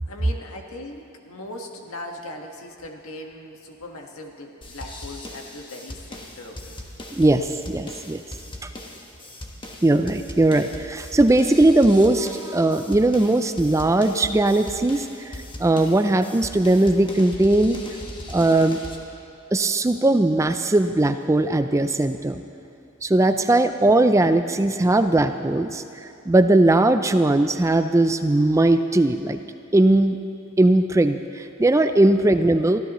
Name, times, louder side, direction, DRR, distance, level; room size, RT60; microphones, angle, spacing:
voice 1, 0.1-6.8 24.8-24.9 32.1-32.2, left 1 dB, 85° left, 2 dB, 1.6 m, -39 dB
sound 1, 4.6-19.0, left 1 dB, 25° left, 1.3 m, -39 dB
voice 2, 7.1-8.2 8.6-8.7 9.8-17.8 18.3-18.8 19.5-22.4 23.0-25.8 26.3-29.4 29.7-30.2 30.6-32.8, right 2 dB, 15° right, 9 dB, 0.4 m, -19 dB
23.5 x 15.0 x 3.1 m, 2.7 s
head